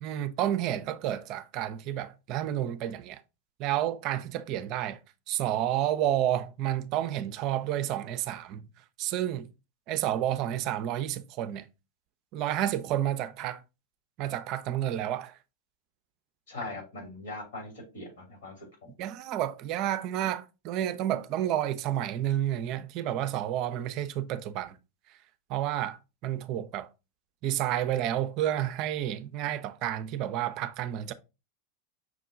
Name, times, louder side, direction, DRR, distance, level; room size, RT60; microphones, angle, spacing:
voice 1, 0.0-3.2 3.6-5.0 5.3-8.6 9.0-9.5 9.9-11.6 12.3-13.6 14.2-15.3 19.0-24.8 25.5-26.9 27.4-31.1, right 12 dB, 50° right, 0.4 m, -30 dB
voice 2, 16.5-18.7, left 2 dB, 70° left, 2.6 m, -40 dB
6.1 x 2.2 x 3.7 m
hypercardioid pair, 90°, 0 cm